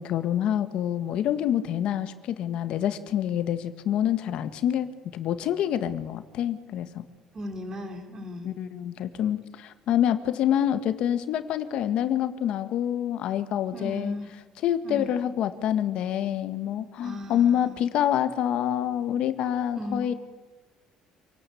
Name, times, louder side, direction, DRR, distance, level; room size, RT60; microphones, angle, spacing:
voice 1, 0.0-7.1 8.4-14.2 14.6-20.1, left 10 dB, 50° left, 10 dB, 1.8 m, -27 dB
voice 2, 7.3-8.5 13.7-14.3 14.8-15.3 17.0-17.8 19.8-20.2, left 1 dB, 25° right, 6 dB, 3.8 m, -36 dB
27.5 x 18.5 x 8.6 m, 1.3 s
cardioid pair, 175°, 2 cm